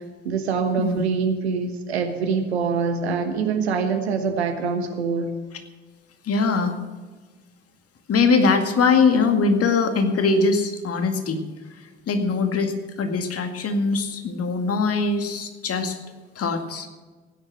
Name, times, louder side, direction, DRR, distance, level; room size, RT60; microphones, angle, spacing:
voice 1, 0.2-5.3, right 5 dB, 80° right, 7 dB, 1.3 m, -24 dB
voice 2, 6.2-6.7 8.1-11.4 12.1-15.9 16.4-16.9, left 4 dB, 45° left, 6 dB, 2.1 m, -21 dB
16.0 x 10.0 x 6.4 m, 1.3 s
figure-of-eight pair, 45°, 32 cm